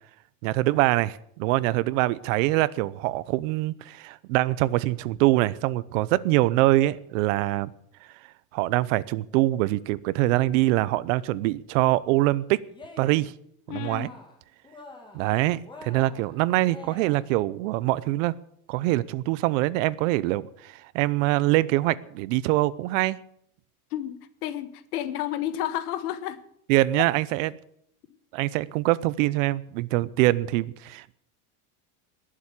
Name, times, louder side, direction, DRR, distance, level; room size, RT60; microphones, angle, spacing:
voice 1, 0.4-7.7 8.5-12.6 13.0-13.3 13.7-14.1 15.1-18.3 18.7-23.2 26.7-27.5 28.3-31.1, right 17 dB, 55° right, 19 dB, 0.8 m, -24 dB
Cheering, 12.7-13.3 13.7-14.4 14.6-15.3 15.6-17.4, left 2 dB, 10° left, 2.1 m, -46 dB
voice 2, 13.7-14.1 23.9-26.4 27.0-27.1, left 12 dB, 80° left, 13 dB, 1.5 m, -31 dB
20.0 x 7.6 x 8.3 m, 0.69 s
supercardioid pair, 165°, 45 cm